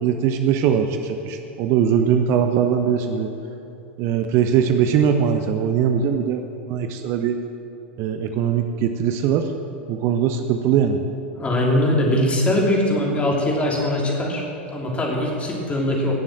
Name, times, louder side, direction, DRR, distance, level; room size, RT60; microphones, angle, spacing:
voice 1, 0.0-3.3 4.0-7.4 8.0-9.5 9.9-11.0, right 8 dB, 40° right, 6 dB, 0.8 m, -21 dB
voice 2, 11.4-14.4 14.7-16.1, left 1 dB, 20° left, -2 dB, 3.3 m, -21 dB
17.5 x 7.3 x 7.6 m, 2.7 s
figure-of-eight pair, 85°, 7 cm